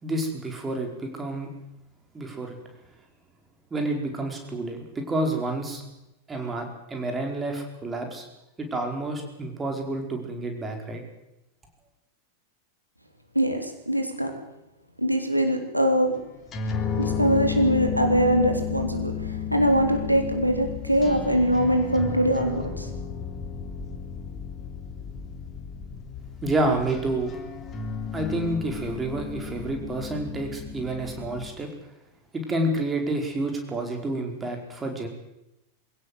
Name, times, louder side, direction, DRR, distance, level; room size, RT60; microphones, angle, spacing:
voice 1, 0.0-1.5 2.1-2.6 3.7-5.8 6.3-8.2 8.6-11.0 26.4-27.3 28.1-31.7 32.3-35.1, right 2 dB, 15° right, 3 dB, 4.8 m, -29 dB
voice 2, 13.4-14.3 15.0-16.2 17.0-22.9, equal, 90° right, 3 dB, 3.5 m, -23 dB
sound 1, 16.4-31.5, left 7 dB, 25° left, 3.2 m, -33 dB
23.5 x 16.5 x 8.0 m, 0.91 s
figure-of-eight pair, 90°, 0 cm